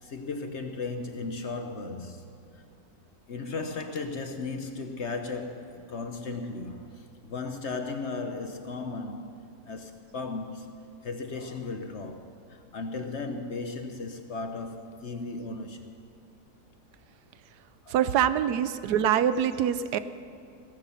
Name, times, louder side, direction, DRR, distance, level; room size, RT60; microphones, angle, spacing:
voice 1, 0.0-2.2 2.5-2.6 3.3-15.9 17.8-18.0, left 3 dB, 55° left, 0.9 m, -36 dB
voice 2, 17.9-20.0, right 9 dB, 75° right, 1.2 m, -24 dB
16.5 x 14.0 x 5.7 m
omnidirectional pair, 1.8 m